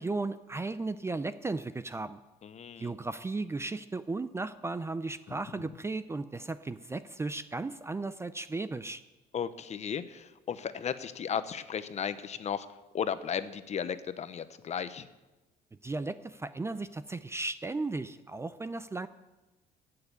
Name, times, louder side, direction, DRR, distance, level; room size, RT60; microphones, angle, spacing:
voice 1, 0.0-2.2 2.8-9.0 15.8-19.1, right 3 dB, 15° right, 13 dB, 0.5 m, -35 dB
voice 2, 2.4-3.0 5.3-5.6 9.3-12.7 12.9-15.1, left 8 dB, 40° left, 13 dB, 0.8 m, -35 dB
15.0 x 6.8 x 8.5 m, 1.1 s
cardioid pair, 110°, 17 cm